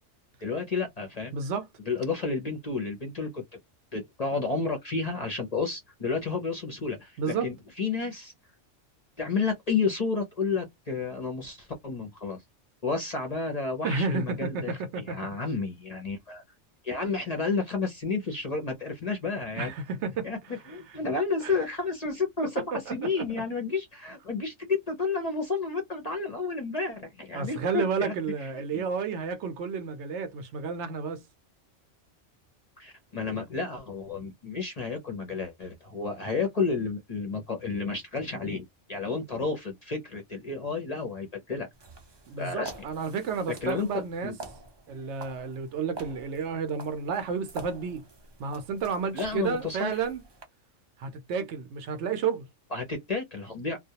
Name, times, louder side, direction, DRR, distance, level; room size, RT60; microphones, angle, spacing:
voice 1, 0.4-1.3 1.9-3.4 3.9-8.3 9.2-12.4 12.8-14.8 15.1-16.4 16.8-19.7 20.2-20.4 20.7-28.1 28.4-28.8 32.8-41.7 42.4-42.7 43.5-44.3 49.1-50.0 52.7-53.8, left 4 dB, 45° left, 0.5 m, -31 dB
voice 2, 1.3-1.7 7.2-7.5 13.8-15.2 19.6-20.3 21.4-21.6 22.4-23.2 27.3-31.2 42.3-44.3 44.9-48.0 48.4-50.2 51.0-52.4, right 5 dB, 70° right, 0.8 m, -31 dB
sound 1, 41.7-50.4, right 3 dB, 40° right, 0.4 m, -47 dB
2.2 x 2.1 x 2.8 m
omnidirectional pair, 1.3 m